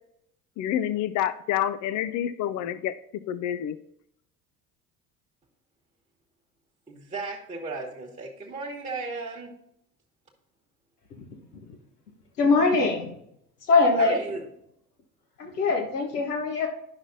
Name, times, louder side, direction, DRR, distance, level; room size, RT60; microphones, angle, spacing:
voice 1, 0.6-3.0 3.3-3.8, left 11 dB, 40° left, 14 dB, 0.5 m, -28 dB
voice 2, 6.9-9.5 14.0-14.5, right 3 dB, 15° right, -2 dB, 1.4 m, -35 dB
voice 3, 12.4-13.1 13.7-14.2 15.4-16.7, left 3 dB, 85° left, 2 dB, 1.4 m, -22 dB
10.5 x 6.0 x 2.7 m, 0.75 s
hypercardioid pair, 60°, 46 cm